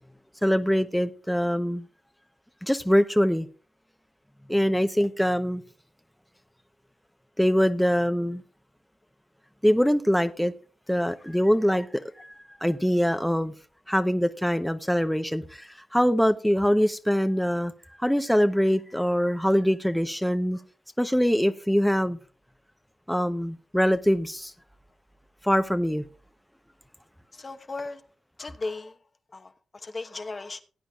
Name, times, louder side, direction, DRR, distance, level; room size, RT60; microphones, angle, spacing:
voice 1, 0.4-1.9 2.6-3.5 4.5-5.6 7.4-8.4 9.6-10.5 10.9-11.9 12.2-12.3 12.6-13.5 13.9-17.7 18.0-20.6 21.0-22.2 23.1-24.5 25.4-26.0, equal, 5° left, 0.8 m, -23 dB
voice 2, 27.3-28.0 28.4-29.0 29.3-30.6, left 3 dB, 40° left, 1.1 m, -36 dB
18.0 x 8.8 x 2.4 m
supercardioid pair, 45°, 0 cm